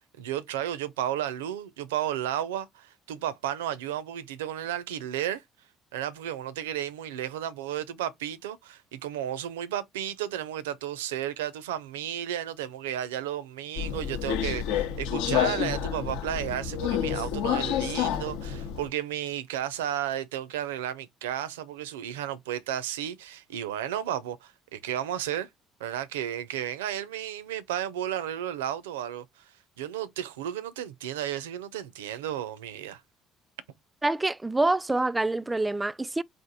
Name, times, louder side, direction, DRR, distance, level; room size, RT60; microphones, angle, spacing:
voice 1, 0.2-5.4 5.9-25.5 25.8-29.2 29.8-33.0, right 11 dB, 85° right, 0.5 m, -33 dB
Subway metro underground, 13.8-18.9, left 9 dB, 75° left, 0.7 m, -29 dB
voice 2, 34.0-36.2, right 2 dB, 15° right, 0.4 m, -26 dB
4.4 x 2.5 x 3.7 m
hypercardioid pair, 60°, 0 cm